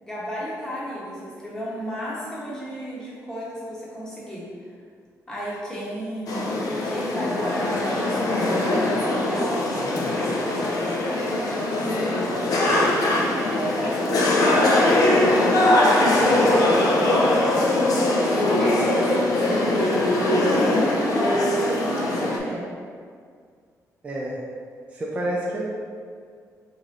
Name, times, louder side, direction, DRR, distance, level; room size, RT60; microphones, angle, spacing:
voice 1, 0.0-4.4 5.3-6.5 6.8-12.2 13.3-15.5 15.9-16.4 18.1-22.7, equal, 10° left, -7 dB, 0.8 m, -33 dB
sound 1, 6.3-22.4, left 1 dB, 80° left, 0.4 m, -21 dB
voice 2, 16.4-16.8 24.0-24.4 24.9-25.6, right 1 dB, 20° right, -4 dB, 0.4 m, -27 dB
3.0 x 2.6 x 3.7 m, 2.1 s
wide cardioid pair, 155°, 6 cm